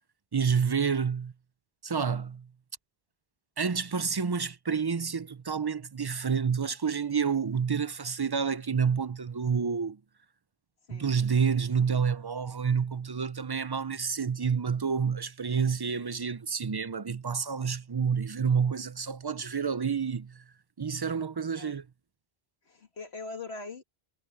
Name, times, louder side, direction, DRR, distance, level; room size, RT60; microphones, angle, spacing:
voice 1, 0.3-1.3 1.8-2.5 3.6-10.0 10.9-20.4 20.8-21.8, right 6 dB, 35° right, 0.4 m, -29 dB
voice 2, 22.7-23.8, left 3 dB, 85° left, 2.5 m, -41 dB
omnidirectional pair, 1.0 m